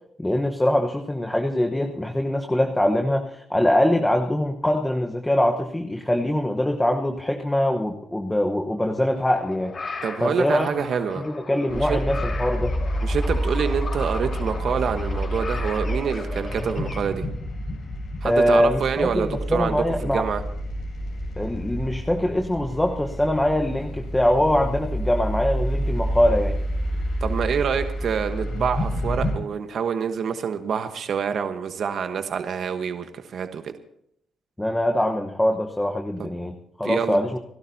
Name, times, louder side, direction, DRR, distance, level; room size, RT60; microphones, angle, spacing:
voice 1, 0.2-9.7 10.2-10.9 11.2-12.7 18.2-20.2 21.4-26.6 34.6-37.4, left 1 dB, 10° left, 3 dB, 1.2 m, -23 dB
sound 1, 9.0-17.0, left 4 dB, 40° left, 4.3 m, -37 dB
voice 2, 10.0-11.2 11.9-12.0 13.0-17.2 18.2-20.4 27.2-33.7 36.8-37.2, right 7 dB, 60° right, 7 dB, 1.2 m, -26 dB
sound 2, 11.7-29.3, equal, 65° left, 7.2 m, -28 dB
29.5 x 12.0 x 2.8 m, 0.72 s
cardioid pair, 90°, 0 cm